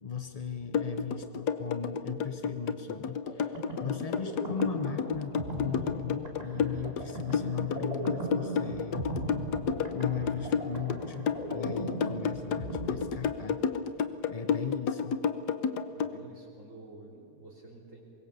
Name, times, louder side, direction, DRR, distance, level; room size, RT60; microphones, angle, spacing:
voice 1, 0.0-9.0 9.9-13.6 14.3-15.2, left 7 dB, 40° left, 9 dB, 0.5 m, -37 dB
sound 1, 0.7-16.1, left 6 dB, 80° left, 1.6 m, -30 dB
sound 2, 3.2-13.8, right 2 dB, 25° right, 2.8 m, -38 dB
voice 2, 15.9-18.0, right 2 dB, 50° right, -1 dB, 3.8 m, -50 dB
25.0 x 21.5 x 6.8 m, 2.8 s
omnidirectional pair, 1.7 m